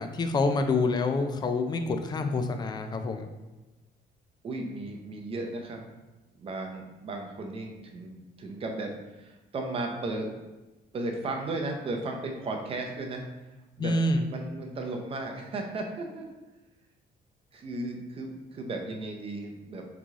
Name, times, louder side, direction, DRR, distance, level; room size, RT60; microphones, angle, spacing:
voice 1, 0.0-3.3 13.8-14.3, left 3 dB, 25° left, 7 dB, 0.3 m, -27 dB
voice 2, 4.4-5.9 6.4-10.3 10.9-13.3 13.8-14.0 14.3-16.2 17.5-19.9, right 2 dB, 35° right, 2 dB, 0.6 m, -35 dB
3.8 x 3.1 x 3.6 m, 1.1 s
cardioid pair, 160°, 17 cm